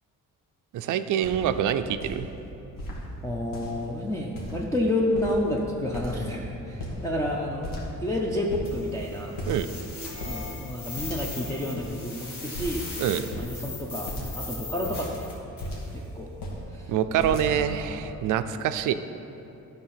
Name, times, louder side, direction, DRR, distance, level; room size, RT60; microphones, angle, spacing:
voice 1, 0.7-2.3 9.5-9.7 13.0-13.2 16.9-18.9, right 9 dB, 70° right, 11 dB, 0.5 m, -25 dB
sound 1, 0.8-0.9 1.2-1.5 1.9-2.2 2.8-3.0 3.4-3.9 4.4-4.8 5.0-5.5 5.9-6.4 6.7-7.3 7.6-8.2 8.5-8.7 9.4-9.7 10.0-10.4 11.0-11.5 11.7-11.9 12.5-12.9 13.3-13.5 14.1-14.4 14.7-16.0 16.3-16.6 17.2-17.8, equal, 90° left, 1.9 m, -36 dB
voice 2, 3.2-7.7 8.0-9.4 10.2-12.8 13.4-15.2 15.9-16.4 16.7-16.9 17.3-18.4, left 1 dB, 10° left, -3 dB, 0.5 m, -30 dB
sound 2, 8.6-15.8, left 3 dB, 55° left, 2.3 m, -39 dB
12.5 x 4.4 x 5.7 m, 2.9 s
cardioid pair, 170°, 32 cm